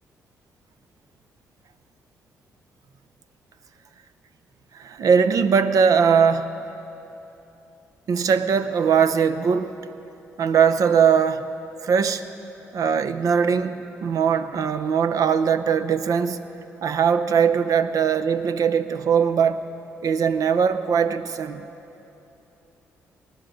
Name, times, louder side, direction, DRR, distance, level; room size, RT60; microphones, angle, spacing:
voice 1, 4.7-6.5 8.1-9.7 10.4-11.5 11.8-12.2 12.7-16.4 16.8-19.6 20.0-21.7, right 6 dB, 60° right, 0.7 m, -20 dB
20.5 x 12.0 x 5.1 m
hypercardioid pair, 45°, 7 cm